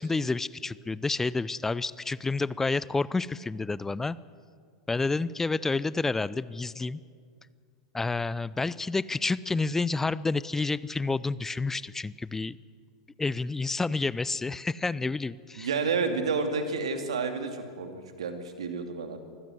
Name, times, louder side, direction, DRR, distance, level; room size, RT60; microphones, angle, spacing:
voice 1, 0.0-4.2 4.9-7.0 7.9-12.6 13.2-15.7, left 3 dB, 10° left, 19 dB, 0.5 m, -29 dB
voice 2, 15.6-19.2, right 4 dB, 80° right, 6 dB, 2.5 m, -30 dB
24.0 x 15.5 x 7.9 m, 2.1 s
hypercardioid pair, 95°, 3 cm